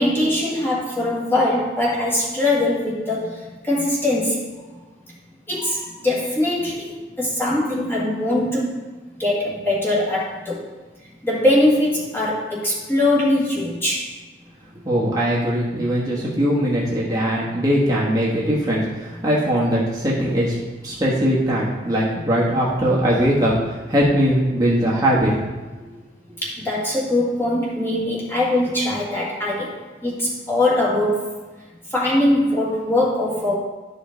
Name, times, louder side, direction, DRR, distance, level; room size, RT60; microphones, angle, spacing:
voice 1, 0.0-3.3 3.6-4.4 5.5-8.7 9.2-10.6 11.2-14.1 26.4-29.8 30.0-31.3 31.9-33.6, left 1 dB, 15° left, -6 dB, 1.8 m, -21 dB
voice 2, 14.8-20.6 20.8-25.3, equal, 20° right, -6 dB, 1.3 m, -20 dB
11.5 x 5.1 x 3.9 m, 1.3 s
head